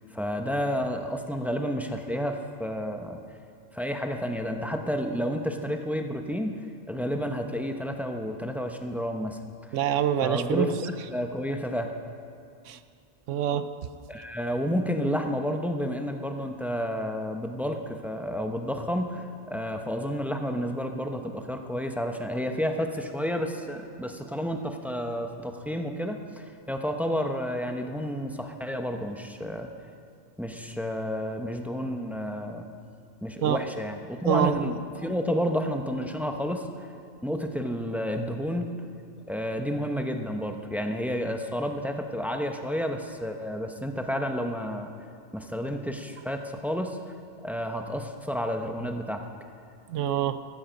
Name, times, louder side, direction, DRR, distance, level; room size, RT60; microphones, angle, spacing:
voice 1, 0.1-3.2 3.7-6.5 6.9-9.4 10.2-11.9 14.1-29.7 30.4-32.7 33.2-36.6 37.2-38.7 39.3-44.9 45.3-47.0 47.4-49.2, equal, ahead, 4 dB, 0.7 m, -30 dB
voice 2, 9.7-10.7 12.7-12.8 13.3-13.7 33.4-33.6 34.3-34.5 49.9-50.4, right 10 dB, 85° right, 11 dB, 1.0 m, -25 dB
15.0 x 14.5 x 5.2 m, 2.3 s
omnidirectional pair, 1.2 m